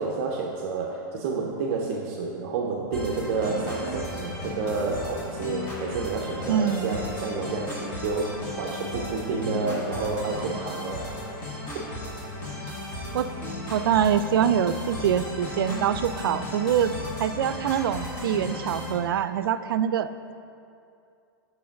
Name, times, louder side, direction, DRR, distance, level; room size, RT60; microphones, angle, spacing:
voice 1, 0.0-11.3 11.7-11.9, right 4 dB, 40° right, -1 dB, 0.6 m, -30 dB
sound 1, 2.9-18.9, left 1 dB, 35° left, 1.7 m, -35 dB
voice 2, 6.5-7.0 13.1-13.3 13.7-20.1, right 9 dB, 80° right, 13 dB, 0.4 m, -24 dB
5.9 x 4.7 x 6.3 m, 2.5 s
supercardioid pair, 160°, 12 cm